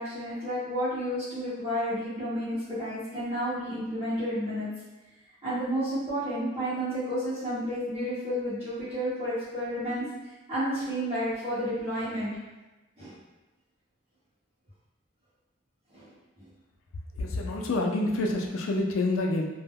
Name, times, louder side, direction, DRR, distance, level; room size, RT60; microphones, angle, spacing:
voice 1, 0.0-4.7 5.4-10.1 10.5-12.3 13.0-13.1 15.9-16.1 16.4-16.5, equal, 30° right, -13 dB, 1.0 m, -31 dB
voice 2, 17.2-19.5, left 2 dB, 70° left, 2 dB, 0.4 m, -27 dB
2.1 x 2.1 x 3.4 m, 1.1 s
head